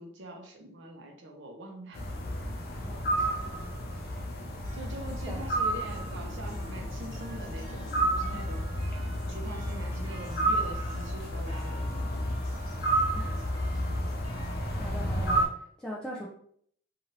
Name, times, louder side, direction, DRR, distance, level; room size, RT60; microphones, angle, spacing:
voice 1, 0.0-2.0 4.7-8.6 9.3-12.3, right 1 dB, 65° right, 3 dB, 0.6 m, -43 dB
sound 1, 1.9-15.5, right 1 dB, 50° left, 0.6 m, -31 dB
voice 2, 2.9-3.8 5.3-5.4 13.1-13.4 14.2-14.4 14.8-16.3, equal, 5° left, -4 dB, 0.3 m, -42 dB
sound 2, 4.6-14.8, equal, 20° left, 0.9 m, -49 dB
2.8 x 2.5 x 2.9 m, 0.64 s
head